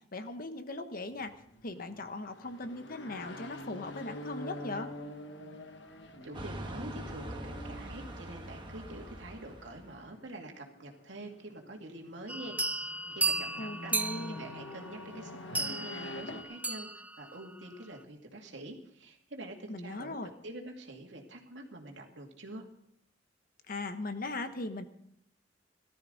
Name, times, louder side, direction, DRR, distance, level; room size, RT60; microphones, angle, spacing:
voice 1, 0.1-1.3 1.6-4.9 13.6-14.4 19.7-20.3 23.7-24.8, left 2 dB, 50° left, 8 dB, 1.2 m, -39 dB
sound 1, 1.1-16.4, left 1 dB, 80° left, 1.5 m, -47 dB
voice 2, 6.2-16.9 17.2-20.2 20.4-22.7, right 1 dB, 90° right, 2 dB, 2.4 m, -46 dB
sound 2, 6.3-10.0, right 1 dB, 25° right, 1.4 m, -43 dB
sound 3, 12.3-17.4, right 3 dB, 10° right, 0.4 m, -35 dB
18.5 x 13.0 x 4.0 m, 0.73 s
head